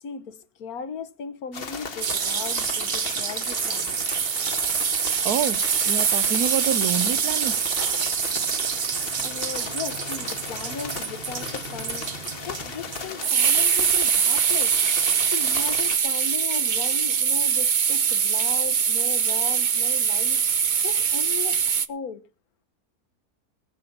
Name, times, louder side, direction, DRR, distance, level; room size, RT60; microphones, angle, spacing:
voice 1, 0.0-4.2 9.2-12.1 12.4-14.8 15.3-21.6 21.9-22.2, left 5 dB, 75° left, 1.5 m, -37 dB
sound 1, 1.5-16.0, left 5 dB, 40° left, 1.2 m, -36 dB
sound 2, 2.0-21.9, right 7 dB, 45° right, 0.6 m, -24 dB
voice 2, 5.2-7.7, right 9 dB, 75° right, 1.3 m, -28 dB
18.5 x 6.8 x 5.8 m
omnidirectional pair, 1.6 m